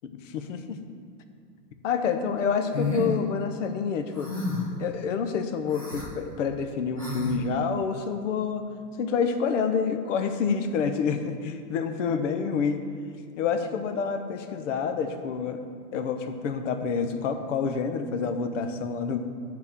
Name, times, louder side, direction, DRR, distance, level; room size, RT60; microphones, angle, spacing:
voice 1, 0.0-0.8 1.8-4.3 4.8-8.6 9.0-12.8 13.4-15.6 15.9-19.2, left 6 dB, 50° left, 7 dB, 0.7 m, -28 dB
sound 1, 2.7-3.1 4.2-4.7 5.7-6.1 7.0-7.3, left 3 dB, 25° left, 0.4 m, -30 dB
8.5 x 4.2 x 7.0 m, 2.3 s
hypercardioid pair, 170°, 48 cm